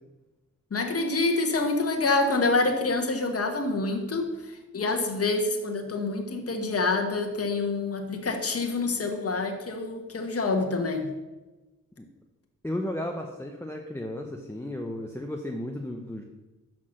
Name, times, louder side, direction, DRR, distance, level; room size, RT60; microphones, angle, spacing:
voice 1, 0.7-11.1, left 3 dB, 45° left, 3 dB, 1.3 m, -27 dB
voice 2, 12.6-16.3, left 1 dB, 10° left, 2 dB, 0.7 m, -34 dB
6.0 x 5.9 x 6.3 m, 1.1 s
cardioid pair, 75°, 32 cm